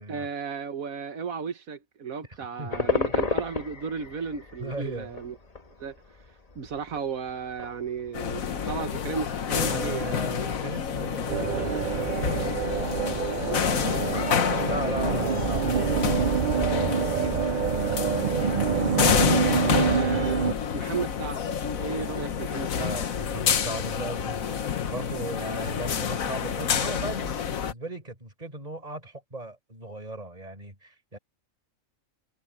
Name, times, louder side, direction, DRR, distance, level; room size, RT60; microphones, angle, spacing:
voice 1, 0.1-5.3 5.8-6.0 6.5-10.2 19.4-20.4 20.7-21.4 21.7-22.9, right 5 dB, 85° right, 1.7 m, -34 dB
voice 2, 2.3-2.9 4.6-5.1 9.5-12.6 13.7-17.4 18.2-18.4 22.8-31.2, right 2 dB, 30° right, 4.9 m, -37 dB
sound 1, 2.7-12.6, left 4 dB, 30° left, 1.3 m, -35 dB
sound 2, 8.1-27.7, left 8 dB, 80° left, 1.5 m, -28 dB
sound 3, 11.3-20.5, right 7 dB, 50° right, 0.5 m, -26 dB
omnidirectional pair, 1.4 m